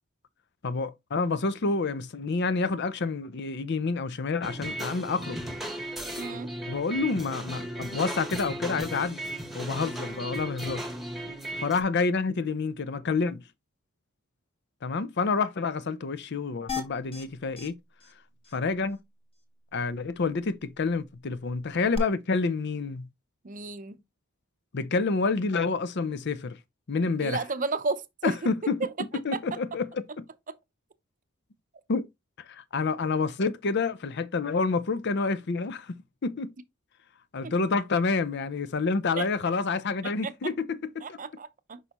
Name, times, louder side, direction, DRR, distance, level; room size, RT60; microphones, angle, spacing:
voice 1, 0.6-5.4 6.7-9.2 9.5-10.8 11.6-13.4 14.8-17.8 18.5-19.0 19.7-23.1 24.7-26.6 26.9-27.4 28.2-28.8 29.1-30.3 31.9-32.1 32.5-36.5 37.3-41.2, left 4 dB, 55° left, 0.6 m, -28 dB
sound 1, 4.4-11.8, right 1 dB, ahead, 1.2 m, -36 dB
voice 2, 6.2-6.5 23.4-24.0 27.2-28.3 28.8-28.9 29.3-29.4 37.4-37.5 39.2-39.3 40.0-40.3 41.0-41.8, right 4 dB, 40° right, 0.7 m, -32 dB
sound 2, 16.7-17.2 17.6-17.7 18.0-18.1 18.4-18.6 21.9-22.0, left 5 dB, 25° left, 1.3 m, -35 dB
6.4 x 5.4 x 2.9 m
head